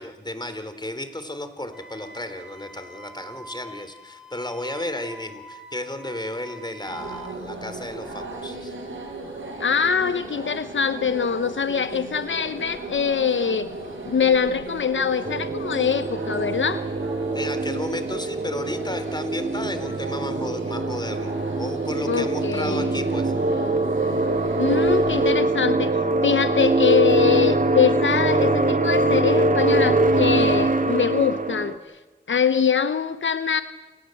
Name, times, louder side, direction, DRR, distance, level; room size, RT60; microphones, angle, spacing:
voice 1, 0.0-8.7 17.3-21.3 21.6-23.3, left 1 dB, 20° left, 9 dB, 3.6 m, -33 dB
Wind instrument woodwind instrument, 1.7-7.4, right 2 dB, 5° right, 5.0 m, -44 dB
sound 1, 6.9-25.3, right 3 dB, 90° right, 6.0 m, -36 dB
voice 2, 9.6-13.7 14.1-16.8 22.1-22.9 24.6-26.0 26.2-31.8 32.3-33.6, left 6 dB, 75° left, 12 dB, 0.9 m, -23 dB
sound 2, 15.2-31.8, right 2 dB, 45° right, 1.9 m, -23 dB
29.5 x 18.5 x 7.9 m, 1.2 s
cardioid pair, 50°, 20 cm